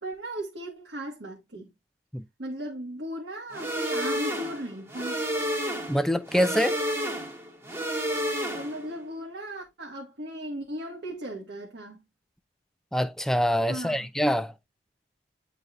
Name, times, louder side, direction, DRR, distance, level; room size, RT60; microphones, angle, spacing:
voice 1, 0.0-1.7 2.4-5.2 8.5-12.0 13.7-14.1, right 1 dB, 60° right, 1.5 m, -37 dB
sound 1, 3.5-8.9, equal, 15° right, 1.3 m, -30 dB
voice 2, 5.9-6.8 12.9-14.5, equal, ahead, 0.5 m, -25 dB
9.6 x 4.0 x 2.5 m
head